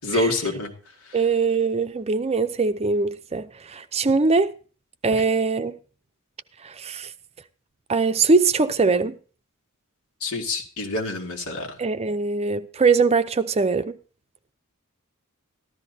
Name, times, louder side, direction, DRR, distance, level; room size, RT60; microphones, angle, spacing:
voice 1, 0.0-0.7 10.2-11.7, left 2 dB, 80° left, 2.5 m, -26 dB
voice 2, 1.1-4.5 5.0-5.7 6.6-7.1 7.9-9.2 11.8-13.9, right 4 dB, 30° right, 0.6 m, -22 dB
14.0 x 13.0 x 2.8 m
head